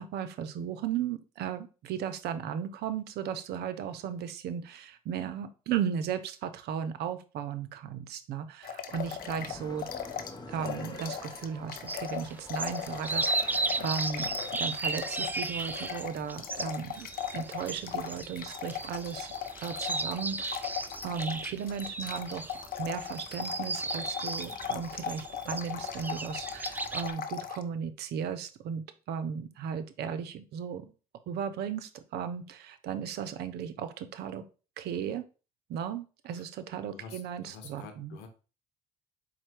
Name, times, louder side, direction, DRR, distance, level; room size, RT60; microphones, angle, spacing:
voice 1, 0.0-9.9 10.5-17.1 17.3-19.3 19.6-20.7 21.0-30.9 31.3-34.4 34.8-35.3 35.7-38.2, right 8 dB, 60° right, 11 dB, 0.6 m, -36 dB
sound 1, 8.6-10.4 10.6-27.6, left 8 dB, 50° left, 0.5 m, -38 dB
sound 2, 8.9-14.6, left 2 dB, 20° left, 0.8 m, -47 dB
sound 3, 11.9-27.1, right 3 dB, 10° right, 0.3 m, -35 dB
voice 2, 36.9-38.3, left 5 dB, 70° left, 6 dB, 0.9 m, -48 dB
4.4 x 2.2 x 4.4 m, 0.34 s
hypercardioid pair, 60°, 19 cm